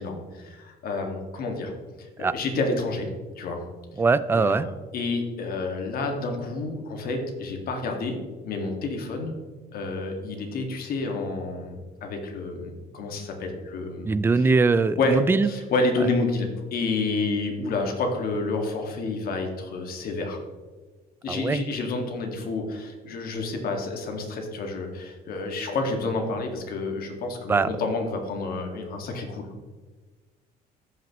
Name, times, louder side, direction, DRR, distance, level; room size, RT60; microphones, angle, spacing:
voice 1, 0.0-1.7 2.0-3.1 3.4-3.6 4.3-9.4 9.7-14.1 14.4-14.5 15.0-20.4 21.2-29.5, left 3 dB, 60° left, 2 dB, 1.9 m, -29 dB
voice 2, 4.0-4.6 14.0-15.5 21.3-21.7 27.5-27.7, right 4 dB, 15° right, 15 dB, 0.3 m, -21 dB
14.5 x 5.9 x 3.0 m, 1.3 s
cardioid pair, 110°, 17 cm